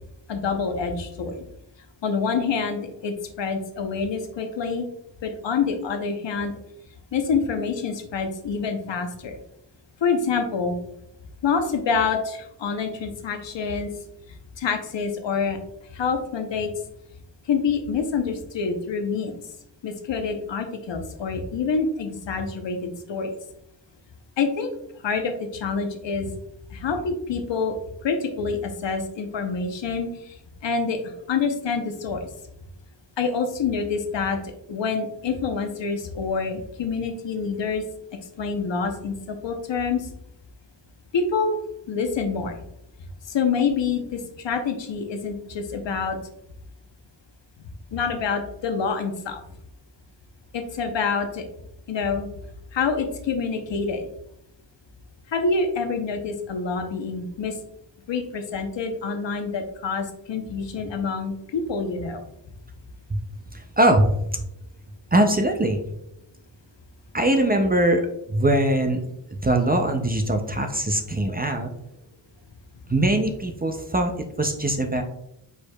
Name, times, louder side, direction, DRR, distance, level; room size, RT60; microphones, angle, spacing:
voice 1, 0.3-1.3 2.0-4.9 5.2-6.5 7.1-9.4 10.0-10.8 11.4-13.9 14.6-15.6 15.9-16.7 17.5-19.4 19.8-23.3 24.4-24.7 25.0-26.3 26.7-27.8 28.0-30.1 30.6-31.0 31.3-32.3 33.2-34.4 34.7-37.8 38.4-40.1 41.1-41.6 41.9-42.6 43.3-46.2 47.9-49.4 50.5-51.5 51.9-52.3 52.7-54.1 55.3-57.5 58.1-62.2, left 5 dB, 80° left, 6 dB, 0.8 m, -26 dB
voice 2, 63.5-64.4 65.1-65.8 67.1-68.0 68.3-69.0 69.3-71.7 72.9-74.1 74.4-75.0, right 1 dB, 25° right, 5 dB, 0.4 m, -21 dB
4.8 x 4.5 x 2.2 m, 0.80 s
wide cardioid pair, 155°, 44 cm